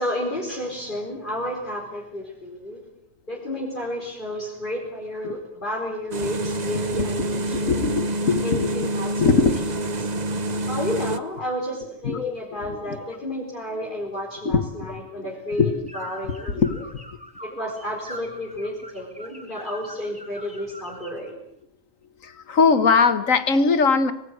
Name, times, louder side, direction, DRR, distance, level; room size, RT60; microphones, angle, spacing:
voice 1, 0.0-2.8 3.3-7.8 8.4-9.5 10.7-16.6 17.4-21.5, left 1 dB, 40° left, -2 dB, 4.5 m, -31 dB
sound 1, 6.1-11.2, right 1 dB, 35° right, 1.1 m, -27 dB
voice 2, 7.5-8.7 9.2-9.5 10.6-10.7 12.0-12.3 12.8-13.0 14.4-15.0 15.6-15.7 16.6-16.8 22.2-24.1, left 5 dB, 85° left, 13 dB, 1.9 m, -21 dB
sound 2, 15.9-21.2, right 1 dB, 5° right, 3.4 m, -42 dB
25.0 x 20.0 x 8.1 m, 0.77 s
omnidirectional pair, 1.3 m